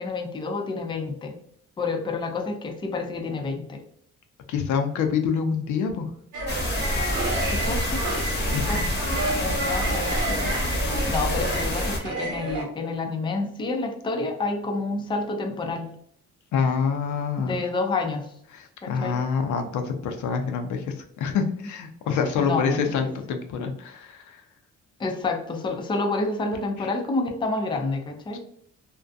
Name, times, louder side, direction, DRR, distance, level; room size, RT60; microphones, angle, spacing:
voice 1, 0.0-1.4 1.8-3.8 7.5-8.0 8.7-8.8 9.3-15.9 17.4-18.3 18.8-19.2 22.4-22.8 25.0-28.4, left 3 dB, 15° left, 4 dB, 0.4 m, -29 dB
voice 2, 4.5-6.1 8.5-8.8 16.5-17.6 18.5-24.4 26.8-26.9 28.3-28.4, left 6 dB, 75° left, 5 dB, 0.5 m, -26 dB
sound 1, 6.3-12.6, right 2 dB, 80° right, 0.9 m, -30 dB
sound 2, 6.5-12.0, left 1 dB, 35° left, 0.8 m, -27 dB
2.4 x 2.2 x 2.5 m, 0.67 s
cardioid pair, 90°, 30 cm